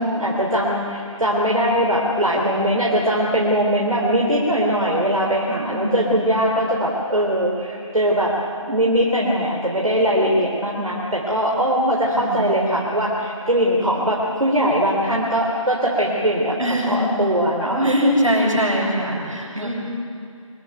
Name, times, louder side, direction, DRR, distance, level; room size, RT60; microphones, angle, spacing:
voice 1, 0.0-8.3 8.7-16.6 16.9-18.3 19.6-19.7, equal, 80° right, -3 dB, 3.8 m, -20 dB
voice 2, 5.5-6.2 12.1-12.8 16.6-17.0 17.8-19.7, equal, 65° right, -2 dB, 7.6 m, -25 dB
24.5 x 14.0 x 9.2 m, 2.4 s
figure-of-eight pair, 180°, 18 cm